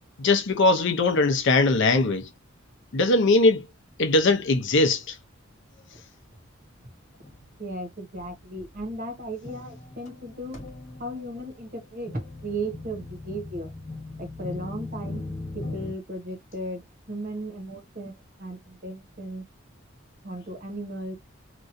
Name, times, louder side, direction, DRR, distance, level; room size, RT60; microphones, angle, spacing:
voice 1, 0.2-2.3 2.9-3.6 4.0-5.2, left 2 dB, 65° left, 0.6 m, -20 dB
sound 1, 7.2-7.5 8.2-8.3 8.6-15.9, left 2 dB, 35° left, 1.1 m, -39 dB
voice 2, 7.6-10.6 11.0-13.7 14.2-15.2 15.5-19.4 20.2-21.2, right 1 dB, 45° right, 1.2 m, -36 dB
3.0 x 2.6 x 2.5 m
head